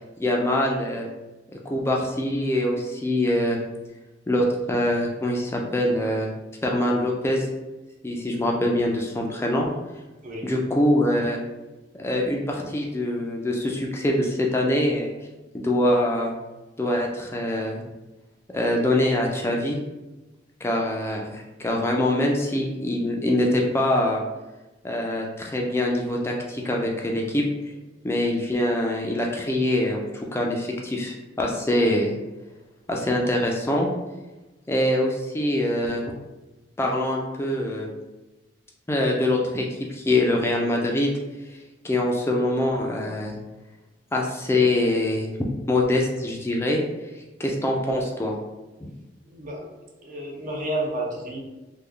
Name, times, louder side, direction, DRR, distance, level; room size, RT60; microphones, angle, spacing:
voice 1, 0.2-1.1 1.7-3.6 4.3-6.3 6.6-7.5 8.0-9.7 10.4-11.4 11.9-15.1 15.5-16.3 16.8-17.8 18.5-19.8 20.6-24.2 24.8-27.4 28.0-30.0 30.3-32.1 32.9-33.9 34.7-36.0 36.8-37.9 38.9-41.1 41.8-43.4 44.1-45.3 45.7-46.8 47.4-48.3 48.8-48.9, left 1 dB, 15° left, -1 dB, 0.4 m, -24 dB
voice 2, 49.3-51.4, right 1 dB, 50° right, 0 dB, 0.6 m, -31 dB
3.2 x 2.2 x 3.7 m, 1.1 s
head